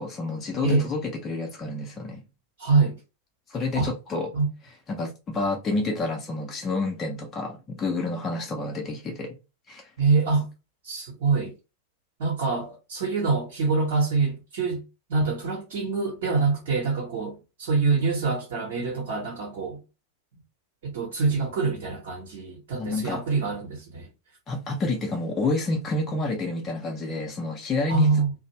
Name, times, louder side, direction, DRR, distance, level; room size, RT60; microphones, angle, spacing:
voice 1, 0.0-2.2 3.5-4.3 4.9-9.4 9.7-9.8 22.7-23.2 24.5-28.1, left 3 dB, 25° left, 0.6 m, -29 dB
voice 2, 2.6-3.0 3.7-3.9 4.3-4.5 10.0-10.5 10.8-11.5 12.2-14.8 15.1-19.8 20.8-24.1 27.9-28.3, right 4 dB, 55° right, 0.9 m, -25 dB
2.5 x 2.0 x 3.0 m
figure-of-eight pair, 90°, 0 cm